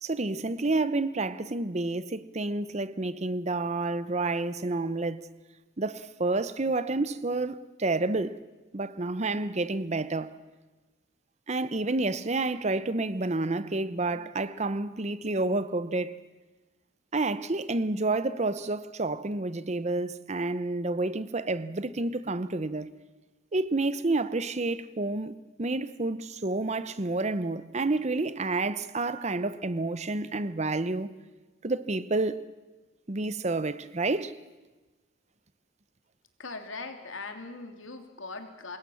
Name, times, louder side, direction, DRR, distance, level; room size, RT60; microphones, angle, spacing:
voice 1, 0.0-5.2 5.8-8.3 8.7-10.4 11.5-16.2 17.1-23.0 23.5-31.1 31.6-32.4 33.1-34.3, right 2 dB, 35° right, 0.8 m, -29 dB
voice 2, 36.4-38.8, left 3 dB, 80° left, 2.9 m, -40 dB
27.0 x 21.0 x 7.1 m
head